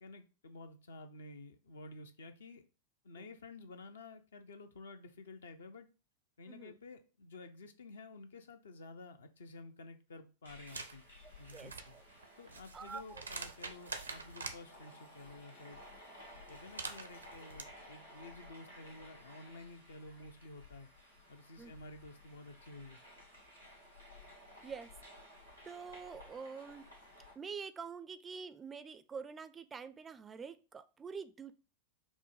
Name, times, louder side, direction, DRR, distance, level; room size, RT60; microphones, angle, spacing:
voice 1, 0.0-2.6 3.0-5.9 6.4-11.0 11.4-12.0 12.4-15.8 16.5-20.9 21.3-23.0, left 2 dB, 65° left, 8 dB, 0.5 m, -52 dB
voice 2, 6.5-6.8 11.2-12.0 12.7-13.2 21.6-21.7 24.6-25.0 25.6-26.9 27.4-31.5, right 5 dB, 20° right, 11 dB, 0.3 m, -46 dB
sound 1, 10.4-27.3, left 1 dB, 85° left, 1.4 m, -56 dB
sound 2, 10.7-10.9 11.4-14.6 16.5-17.6, right 4 dB, 80° right, 0.5 m, -45 dB
5.3 x 2.1 x 4.7 m, 0.33 s
figure-of-eight pair, 90°, 0 cm